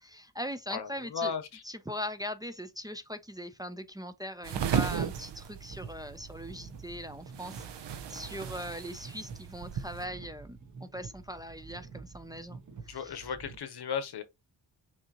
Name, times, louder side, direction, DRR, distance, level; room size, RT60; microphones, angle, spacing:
voice 1, 0.0-1.3 1.6-13.3, equal, 10° right, 0.4 m, -40 dB
voice 2, 0.7-1.4 12.9-14.2, left 6 dB, 65° left, 1.0 m, -35 dB
sound 1, 4.4-10.0, right 8 dB, 75° right, 0.7 m, -36 dB
sound 2, 5.6-13.6, right 4 dB, 45° right, 1.0 m, -48 dB
6.1 x 2.8 x 2.9 m
wide cardioid pair, 120°, 42 cm